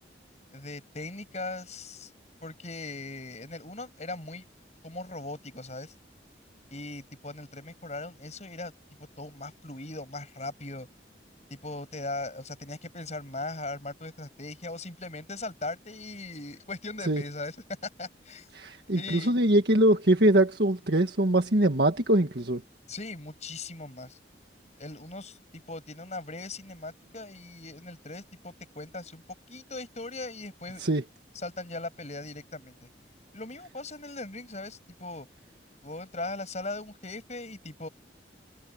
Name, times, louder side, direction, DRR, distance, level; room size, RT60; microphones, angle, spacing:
voice 1, 0.5-2.1 2.4-4.4 4.8-5.9 6.7-8.7 9.2-10.9 11.5-17.6 18.0-18.5 18.9-19.4 22.9-24.2 24.8-29.2 29.5-30.8 31.3-32.9 33.3-35.3 35.8-37.9, left 2 dB, 40° left, 7.8 m, -39 dB
voice 2, 18.5-22.6 30.8-31.0, right 1 dB, 60° right, 1.8 m, -23 dB
head